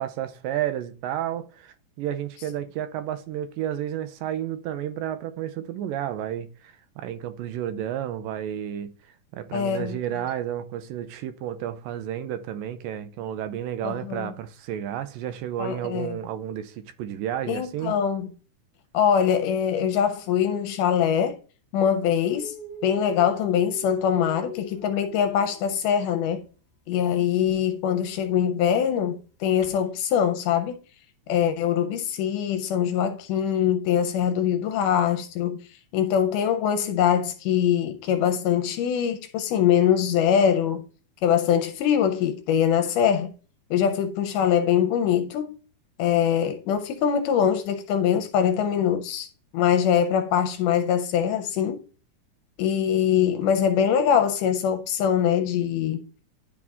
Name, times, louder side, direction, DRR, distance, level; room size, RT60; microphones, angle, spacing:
voice 1, 0.0-8.9 9.3-17.9, right 11 dB, 85° right, 2.3 m, -31 dB
voice 2, 9.5-10.0 13.8-14.3 15.6-16.2 17.5-18.3 18.9-21.4 21.7-22.5 22.8-26.4 26.9-30.8 31.3-35.6 35.9-40.8 41.2-43.3 43.7-45.6 46.0-49.3 49.5-51.8 52.6-56.0, left 8 dB, 80° left, 2.0 m, -23 dB
Dog, 22.4-26.3 27.4-27.6 29.6-29.8, right 2 dB, 25° left, 1.7 m, -42 dB
10.5 x 3.7 x 3.5 m
omnidirectional pair, 3.9 m